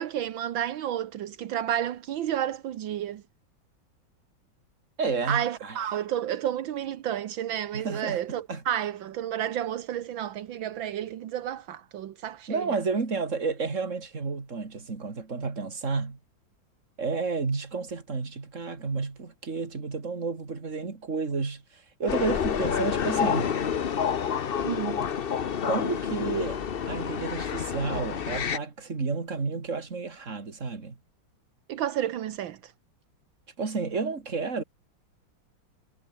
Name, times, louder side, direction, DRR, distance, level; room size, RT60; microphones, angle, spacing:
voice 1, 0.0-3.2 5.3-12.7 24.6-25.1 31.7-32.7, right 11 dB, 80° right, 1.8 m, -31 dB
voice 2, 5.0-5.8 7.7-8.2 8.5-8.6 12.5-16.2 17.0-23.5 25.6-26.6 26.9-31.0 33.6-34.6, right 4 dB, 40° right, 3.0 m, -31 dB
sound 1, 22.1-28.6, left 7 dB, 50° left, 0.6 m, -28 dB
omnidirectional pair, 2.1 m